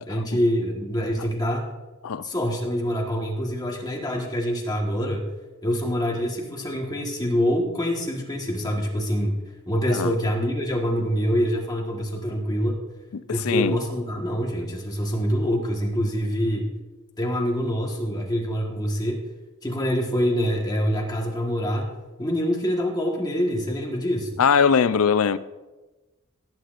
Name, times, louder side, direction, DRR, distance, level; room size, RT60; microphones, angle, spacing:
voice 1, 0.1-1.6 2.2-5.3 5.6-9.4 9.7-12.7 13.3-16.7 17.2-19.2 19.6-21.9 22.2-24.4, equal, 20° left, -1 dB, 1.4 m, -25 dB
voice 2, 13.1-13.8 24.4-25.4, left 6 dB, 80° left, 15 dB, 0.5 m, -21 dB
18.0 x 9.4 x 2.5 m, 1.1 s
head